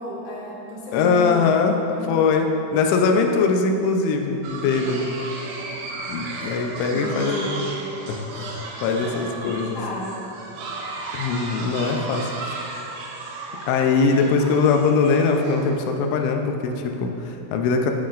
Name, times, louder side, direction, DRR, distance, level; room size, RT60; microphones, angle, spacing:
voice 1, 0.0-1.5 1.9-2.4 6.4-6.6 6.9-7.7 9.0-10.3, equal, 55° left, -7 dB, 2.5 m, -33 dB
voice 2, 0.9-1.8 2.1-5.1 6.1-7.5 8.1-9.8 11.1-12.7 13.7-17.9, left 4 dB, 85° left, 3 dB, 3.1 m, -21 dB
sound 1, 4.4-15.8, right 3 dB, 90° right, 3.5 m, -35 dB
13.0 x 7.3 x 2.5 m, 3.0 s
omnidirectional pair, 5.4 m